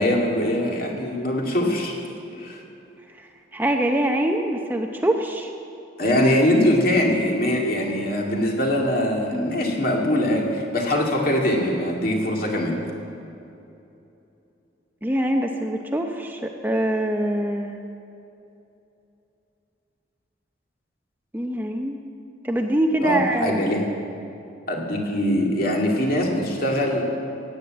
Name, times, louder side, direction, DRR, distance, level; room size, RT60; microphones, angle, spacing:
voice 1, 0.0-1.9 2.3-2.6 6.0-12.8 23.0-23.9 24.7-27.1, left 1 dB, 50° left, -1 dB, 2.4 m, -22 dB
voice 2, 3.5-5.5 9.3-9.5 15.0-17.8 21.3-22.0 22.4-23.7, right 1 dB, 10° right, 3 dB, 0.7 m, -24 dB
17.0 x 9.6 x 7.7 m, 2.8 s
head